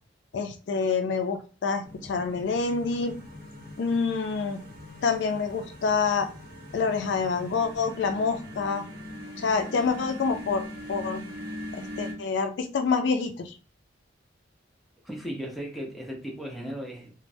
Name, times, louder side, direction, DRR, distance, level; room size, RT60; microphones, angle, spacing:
voice 1, 0.3-3.1 3.8-4.6 5.0-6.3 6.7-8.8 9.4-11.2 12.0-13.5, left 5 dB, 60° left, 7 dB, 0.3 m, -27 dB
sound 1, 1.8-12.1, left 1 dB, 50° right, 1.0 m, -41 dB
voice 2, 15.0-17.1, equal, ahead, -2 dB, 0.6 m, -36 dB
3.1 x 2.0 x 2.6 m, 0.37 s
head